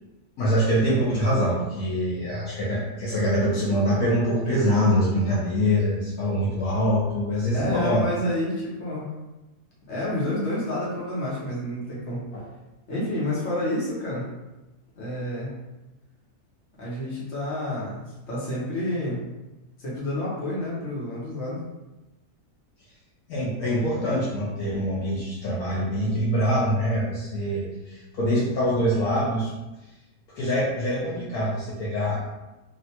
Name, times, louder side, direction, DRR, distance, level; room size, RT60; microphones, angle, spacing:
voice 1, 0.4-8.1 12.3-12.4 23.3-29.5 30.3-32.2, equal, 70° left, -6 dB, 1.1 m, -24 dB
voice 2, 7.5-9.1 9.9-12.2 12.9-14.2 14.9-15.5 16.8-19.2 19.8-21.6, left 1 dB, 50° left, -7 dB, 1.3 m, -29 dB
3.3 x 2.5 x 2.8 m, 1.0 s
omnidirectional pair, 1.7 m